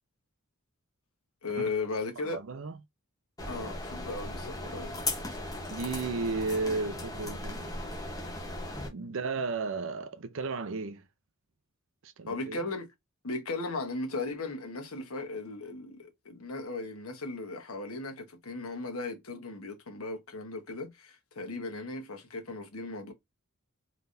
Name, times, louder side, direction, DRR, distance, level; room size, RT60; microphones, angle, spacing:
voice 1, 1.4-2.4 3.5-5.0 12.3-12.9 13.2-23.1, left 3 dB, 80° left, 1.1 m, -37 dB
voice 2, 2.2-2.8 5.7-7.9 8.9-11.0 12.0-12.6, right 3 dB, 60° right, 0.5 m, -34 dB
sound 1, 3.4-8.9, left 2 dB, 15° left, 0.9 m, -37 dB
3.9 x 3.4 x 2.6 m
head